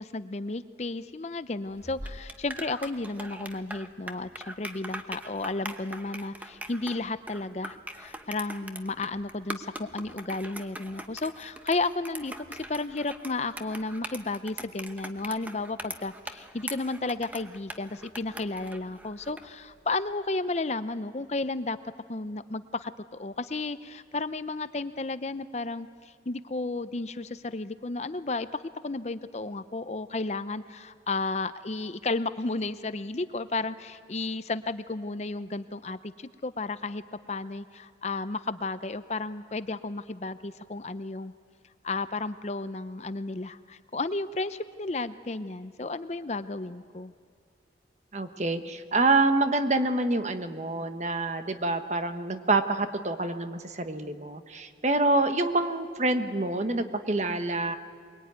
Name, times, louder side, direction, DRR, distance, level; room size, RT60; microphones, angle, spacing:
voice 1, 0.0-21.8 22.1-41.3 41.8-47.1, left 3 dB, 35° left, 12 dB, 0.6 m, -33 dB
sound 1, 1.7-19.5, right 1 dB, 10° right, 0.9 m, -41 dB
voice 2, 48.1-57.8, right 2 dB, 40° right, 8 dB, 1.2 m, -27 dB
23.0 x 22.5 x 9.4 m, 2.2 s
head